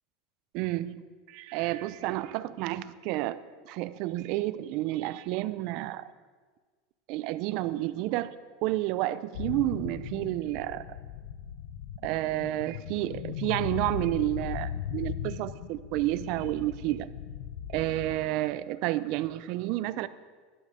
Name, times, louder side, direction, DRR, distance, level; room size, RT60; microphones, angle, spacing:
voice 1, 0.5-1.0 1.3-6.1 7.1-8.3 8.6-10.8 12.0-17.1 17.7-20.1, right 16 dB, 50° right, 15 dB, 0.6 m, -30 dB
sound 1, 9.3-18.2, left 9 dB, 85° left, 0.8 m, -38 dB
12.0 x 11.5 x 6.7 m, 1.5 s
supercardioid pair, 165°, 0 cm